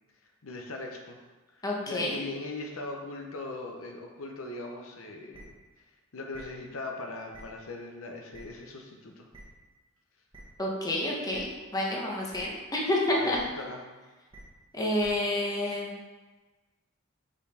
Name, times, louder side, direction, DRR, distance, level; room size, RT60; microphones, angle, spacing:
voice 1, 0.4-1.2 1.6-5.5 6.1-9.3 13.2-13.8, left 2 dB, 85° left, 2 dB, 0.8 m, -40 dB
voice 2, 1.6-2.2 10.6-11.5 11.7-13.4 14.7-16.0, left 1 dB, 20° left, -3 dB, 1.0 m, -29 dB
sound 1, 5.3-5.4 6.3-6.4 7.3-7.4 8.3-8.4 9.3-9.4 10.3-10.4 11.3-11.4 12.3-12.4 13.3-13.4 14.3-14.4 15.0-15.1, right 2 dB, 25° right, 1.2 m, -48 dB
5.7 x 4.2 x 4.2 m, 1.3 s
head